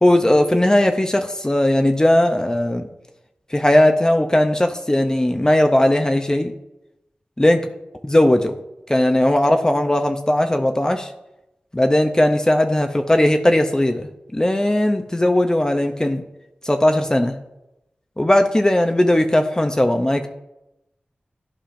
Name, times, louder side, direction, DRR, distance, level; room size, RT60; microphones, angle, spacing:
voice 1, 0.0-2.8 3.5-6.5 7.4-7.6 8.1-8.5 8.9-11.1 11.7-16.2 16.6-17.4 18.2-20.3, left 1 dB, 20° left, 6 dB, 0.5 m, -18 dB
11.5 x 4.9 x 2.6 m, 0.90 s
wide cardioid pair, 55°, 3 cm